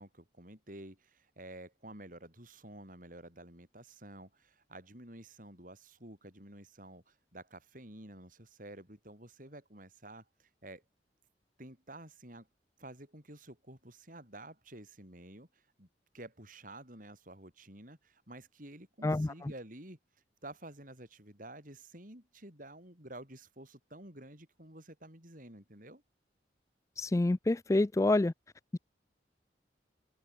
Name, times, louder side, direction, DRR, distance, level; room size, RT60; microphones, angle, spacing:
voice 1, 0.0-10.8 11.6-12.5 12.8-15.9 16.1-20.0 20.4-26.0, right 1 dB, 45° right, 7.9 m, -51 dB
voice 2, 19.0-19.5 27.0-28.3 28.7-28.8, left 2 dB, 15° left, 0.3 m, -28 dB
open air
head